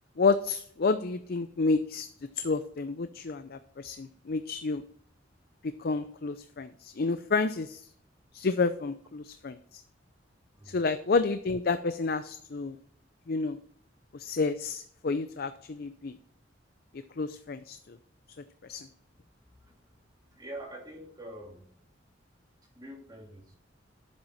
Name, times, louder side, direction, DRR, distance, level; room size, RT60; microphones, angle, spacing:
voice 1, 0.2-2.1 2.4-4.8 5.8-7.9 8.3-9.8 10.7-12.8 13.3-13.6 14.1-16.2 17.2-18.0 18.6-18.9, left 4 dB, 55° left, 10 dB, 0.5 m, -30 dB
voice 2, 20.3-21.7 22.8-23.5, right 1 dB, 20° right, -1 dB, 2.8 m, -45 dB
10.5 x 7.5 x 4.3 m, 0.62 s
head